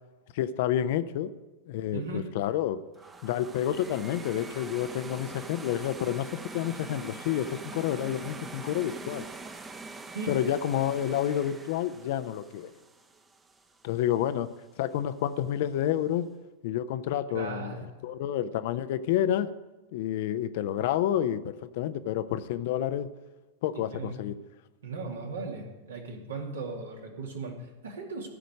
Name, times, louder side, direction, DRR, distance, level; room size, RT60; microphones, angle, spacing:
voice 1, 0.3-1.3 1.7-2.8 3.2-6.3 6.5-9.3 10.3-12.7 13.8-14.5 14.8-16.2 16.6-19.5 19.9-23.1 23.6-24.3, left 11 dB, 50° left, 12 dB, 0.6 m, -29 dB
voice 2, 1.9-2.3 10.1-10.4 17.3-17.9 23.9-24.2 24.8-28.3, right 3 dB, 65° right, 1 dB, 2.3 m, -37 dB
sound 1, 2.9-14.0, right 3 dB, 15° right, 0.9 m, -44 dB
15.0 x 5.1 x 9.6 m, 1.1 s
figure-of-eight pair, 90°, 0 cm